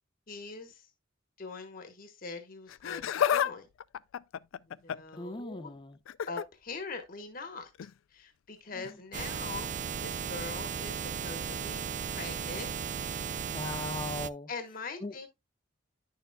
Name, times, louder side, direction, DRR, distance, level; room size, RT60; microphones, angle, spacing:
voice 1, 0.3-0.9 1.4-3.7 4.7-5.7 6.3-7.7 8.1-9.7 10.0-12.7 14.5-15.3, left 4 dB, 45° left, 1.2 m, -42 dB
Laughter, 2.7-3.5 3.8-5.2 6.1-6.4 7.8-7.9 8.8-8.9, left 9 dB, 80° left, 0.3 m, -30 dB
voice 2, 5.2-6.0 8.7-8.9 13.5-14.5 15.0-15.1, left 2 dB, 25° left, 0.5 m, -38 dB
sound 1, 9.1-14.3, right 7 dB, 35° right, 0.3 m, -36 dB
10.0 x 6.7 x 2.2 m
head